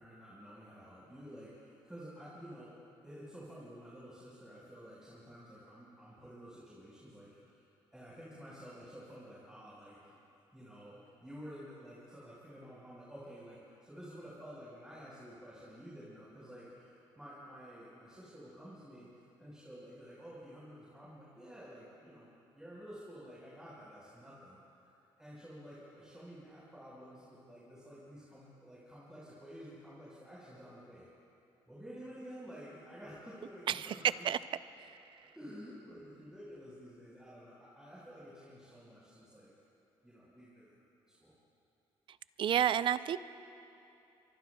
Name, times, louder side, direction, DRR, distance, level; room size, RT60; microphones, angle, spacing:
voice 1, 0.0-2.7 3.0-10.1 10.5-24.9 25.2-31.1 31.7-34.3 35.3-39.5 40.0-41.3, equal, 5° right, -9 dB, 4.6 m, -51 dB
voice 2, 42.4-43.2, right 10 dB, 55° right, 15 dB, 0.5 m, -30 dB
25.0 x 23.5 x 2.3 m, 2.9 s
cardioid pair, 95°, 10 cm